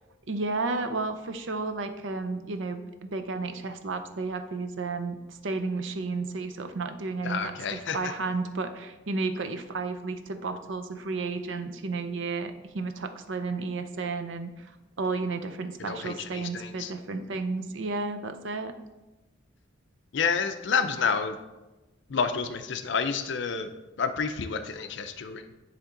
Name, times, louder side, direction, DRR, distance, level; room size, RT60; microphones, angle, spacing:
voice 1, 0.3-14.7 15.0-18.7, right 3 dB, 70° right, 8 dB, 0.6 m, -32 dB
voice 2, 7.2-8.0 15.8-16.9 20.1-21.4 22.1-23.7 24.0-25.5, left 5 dB, 60° left, 9 dB, 0.5 m, -29 dB
9.8 x 3.5 x 3.8 m, 1.1 s
head